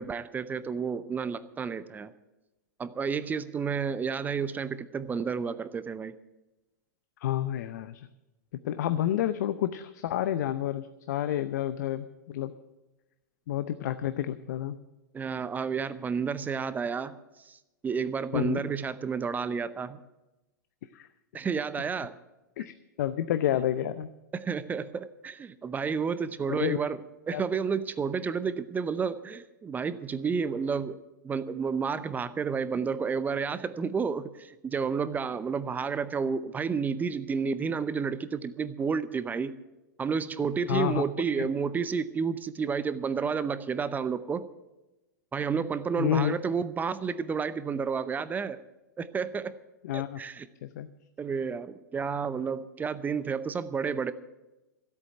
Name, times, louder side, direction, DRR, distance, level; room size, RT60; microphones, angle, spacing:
voice 1, 0.0-2.1 2.8-6.2 15.1-20.0 21.3-22.2 24.3-27.0 27.3-31.0 31.2-39.6 40.0-44.5 45.3-48.6 49.0-49.6 49.9-50.5 51.2-54.1, right 6 dB, 15° right, 14 dB, 0.7 m, -31 dB
voice 2, 7.2-8.1 8.6-12.5 13.5-14.8 18.3-18.6 20.9-21.1 22.6-24.1 26.5-26.8 27.3-27.4 40.7-41.0 41.4-41.5 46.0-46.4 49.8-50.2 50.6-50.9, left 11 dB, 60° left, 11 dB, 0.7 m, -29 dB
13.5 x 8.4 x 9.0 m, 1.0 s
hypercardioid pair, 105°, 10 cm